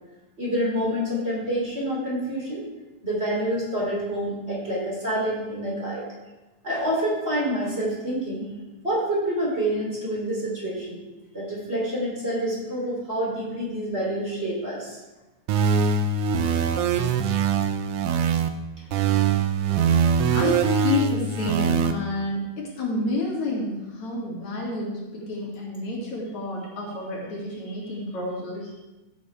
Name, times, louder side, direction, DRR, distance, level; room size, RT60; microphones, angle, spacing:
voice 1, 0.4-2.6 3.0-6.0 6.6-8.5 8.8-11.0 11.3-15.0 15.6-15.7 19.0-19.3 19.7-19.8, right 1 dB, 20° right, -5 dB, 3.5 m, -27 dB
sound 1, 15.5-18.5 18.9-21.9, right 6 dB, 75° right, 1.4 m, -22 dB
voice 2, 20.3-28.7, left 2 dB, 70° left, -3 dB, 3.6 m, -29 dB
15.0 x 8.7 x 3.5 m, 1.1 s
omnidirectional pair, 3.4 m